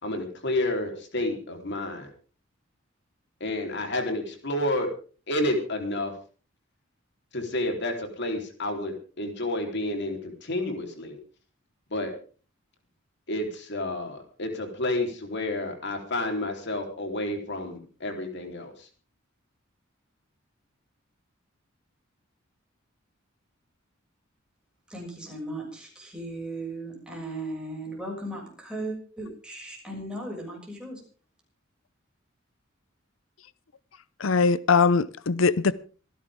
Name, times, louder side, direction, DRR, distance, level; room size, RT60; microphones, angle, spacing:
voice 1, 0.0-2.1 3.4-4.9 5.3-6.1 7.3-11.2 11.9-12.1 13.3-18.9, left 1 dB, 60° left, 3.7 m, -30 dB
voice 2, 24.9-31.0, right 1 dB, 5° right, 6.6 m, -37 dB
voice 3, 34.2-35.7, left 4 dB, 75° left, 0.7 m, -21 dB
26.0 x 11.0 x 3.6 m
head